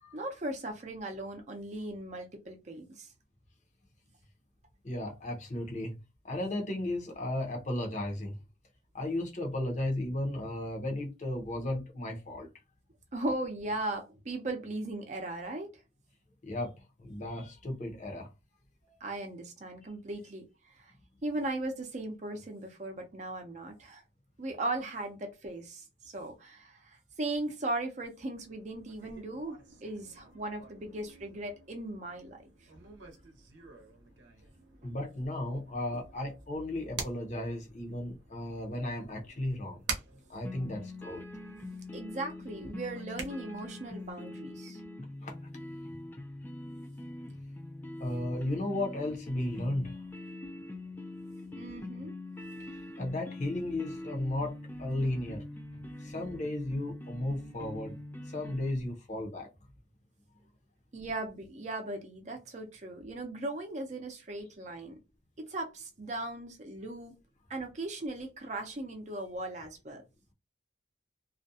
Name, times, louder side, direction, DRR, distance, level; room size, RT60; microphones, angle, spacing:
voice 1, 0.1-3.1 13.1-15.7 19.0-20.4 20.8-20.9 21.2-24.0 24.4-32.4 41.9-44.8 51.5-52.1 60.9-65.0 65.4-67.1 67.5-70.0, right 2 dB, 40° right, 0.5 m, -38 dB
voice 2, 4.8-6.0 6.2-8.4 8.9-12.5 16.4-18.3 34.8-39.8 40.3-41.2 45.2-45.4 48.0-50.0 52.6-55.4 56.0-58.0 58.3-59.5, left 1 dB, 40° left, 0.7 m, -35 dB
sound 1, 28.1-44.1, right 5 dB, 90° right, 0.7 m, -47 dB
sound 2, 40.4-58.7, left 2 dB, 10° left, 0.3 m, -43 dB
2.4 x 2.2 x 2.6 m
head